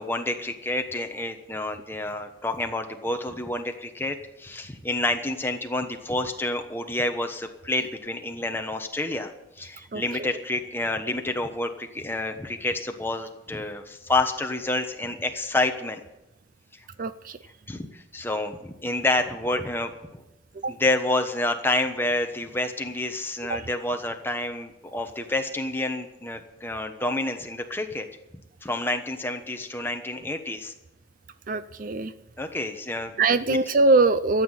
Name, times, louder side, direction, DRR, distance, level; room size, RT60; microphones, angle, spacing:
voice 1, 0.0-16.0 17.7-19.9 20.7-28.1 28.6-30.7 32.4-33.1 33.4-33.6, left 2 dB, 10° left, 5 dB, 1.1 m, -28 dB
voice 2, 9.8-10.3 17.0-17.4 20.6-20.7 23.5-23.6 31.5-32.1 33.2-34.4, right 3 dB, 45° right, 13 dB, 0.5 m, -22 dB
13.5 x 8.3 x 9.2 m, 0.94 s
head